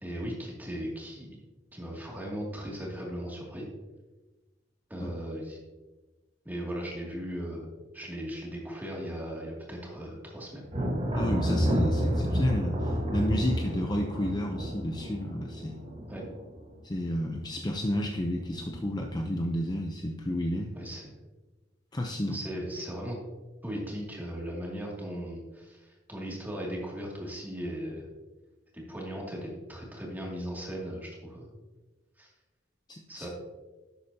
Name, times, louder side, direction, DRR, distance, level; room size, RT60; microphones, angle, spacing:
voice 1, 0.0-1.3 1.7-3.6 4.9-5.6 6.4-7.7 7.9-10.7 16.1-16.2 20.7-21.1 22.3-23.2 23.6-28.1 28.7-31.5 32.2-32.3 33.1-33.3, equal, 10° right, -3 dB, 2.4 m, -37 dB
Thunder, 10.7-17.2 17.5-18.1 18.5-19.4, equal, 30° right, 1.4 m, -30 dB
voice 2, 11.1-15.8 16.8-20.7 21.9-22.4 32.9-33.3, left 1 dB, 20° left, 2 dB, 0.6 m, -31 dB
11.5 x 8.2 x 2.8 m, 1.2 s
head